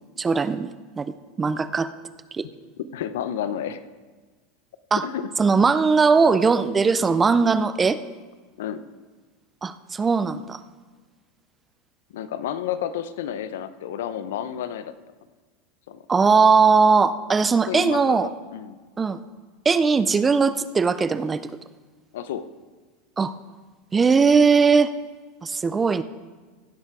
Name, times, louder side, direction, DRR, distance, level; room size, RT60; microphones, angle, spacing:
voice 1, 0.0-1.9 2.3-2.5 4.9-5.0 5.4-8.0 9.6-10.6 16.1-18.3 19.0-19.2 19.7-21.4 23.2-23.3 23.9-24.9 25.4-26.0, right 5 dB, 15° right, 14 dB, 0.3 m, -19 dB
voice 2, 2.9-3.8 5.0-5.3 8.6-8.9 12.1-14.9 15.9-16.0 17.7-18.8 22.1-22.4, left 9 dB, 90° left, 13 dB, 0.7 m, -31 dB
15.5 x 6.8 x 4.7 m, 1.4 s
supercardioid pair, 160°, 0 cm